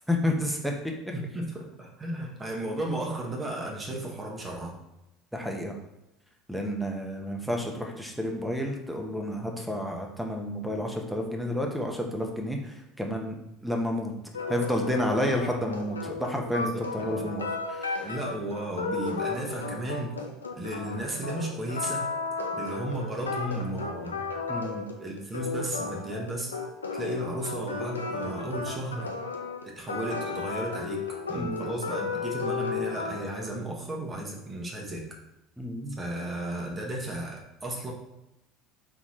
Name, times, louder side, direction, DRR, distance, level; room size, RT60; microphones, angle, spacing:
voice 1, 0.1-0.9 5.3-5.7 6.5-14.1 14.5-18.1 24.5-24.8 31.3-31.7 35.6-36.0, left 1 dB, ahead, 1 dB, 0.9 m, -30 dB
voice 2, 1.1-4.8 16.6-17.3 18.0-20.1 20.6-22.1 22.5-24.2 25.0-26.6 26.9-29.1 29.6-31.0 31.3-35.0 36.0-37.9, right 1 dB, 25° right, -1 dB, 1.2 m, -34 dB
sound 1, 14.3-33.5, left 4 dB, 90° left, 0.4 m, -34 dB
4.0 x 3.6 x 3.1 m, 0.91 s
hypercardioid pair, 70°, 0 cm